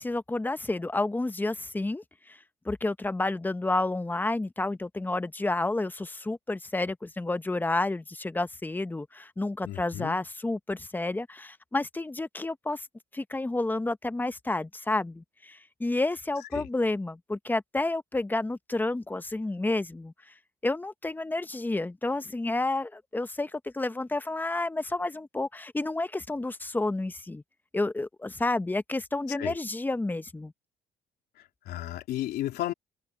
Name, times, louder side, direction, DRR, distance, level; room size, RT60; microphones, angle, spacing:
voice 1, 0.0-2.4 2.6-12.9 13.1-20.1 20.6-27.4 27.7-30.5, left 2 dB, 10° left, 0.9 m, -30 dB
voice 2, 9.6-10.2 16.5-16.7 29.4-29.5 31.7-32.7, left 13 dB, 75° left, 3.0 m, -33 dB
cardioid pair, 110°, 17 cm